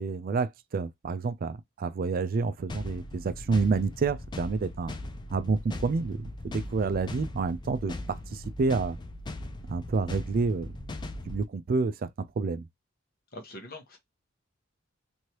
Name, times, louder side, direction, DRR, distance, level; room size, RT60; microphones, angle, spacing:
voice 1, 0.0-4.9 5.3-9.0 9.7-11.0 11.3-12.1 12.4-12.6, right 4 dB, 45° right, 0.4 m, -29 dB
sound 1, 2.7-11.5, left 1 dB, 20° left, 0.4 m, -39 dB
voice 2, 13.3-14.0, left 1 dB, 50° left, 1.0 m, -43 dB
3.1 x 2.6 x 2.9 m
head